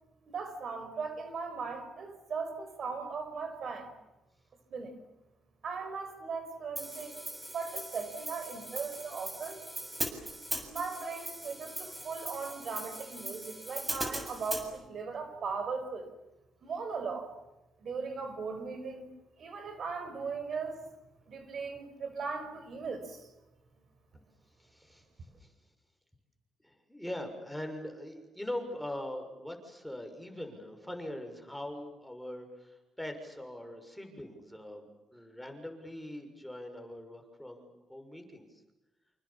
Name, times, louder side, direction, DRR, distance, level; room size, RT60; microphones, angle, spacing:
voice 1, 0.3-3.9 4.7-4.9 5.6-7.2 7.5-9.6 10.7-16.1 16.6-17.3 17.8-19.1 19.4-20.8 21.3-23.2, right 5 dB, 55° right, 9 dB, 5.4 m, -38 dB
Hi-hat, 6.8-14.7, right 1 dB, 15° right, 7.2 m, -40 dB
voice 2, 24.6-25.0 25.3-25.5 26.6-38.5, left 1 dB, 5° left, 5 dB, 6.4 m, -42 dB
28.5 x 27.5 x 7.3 m, 0.98 s
cardioid pair, 90°, 0 cm